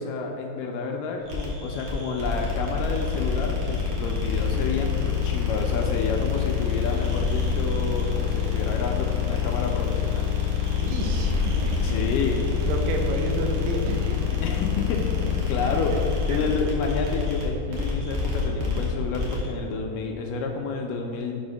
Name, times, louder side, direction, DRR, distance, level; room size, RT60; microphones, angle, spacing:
voice 1, 0.0-10.3 11.8-12.4 14.4-16.0 16.3-21.3, left 4 dB, 80° left, 2 dB, 2.0 m, -30 dB
sound 1, 1.3-19.5, left 6 dB, 65° right, 2.0 m, -26 dB
voice 2, 10.8-12.0 12.6-14.4 15.1-15.2 15.6-16.0 16.3-16.5, right 3 dB, 80° right, 3 dB, 2.3 m, -31 dB
6.9 x 3.5 x 5.3 m, 2.5 s
omnidirectional pair, 4.1 m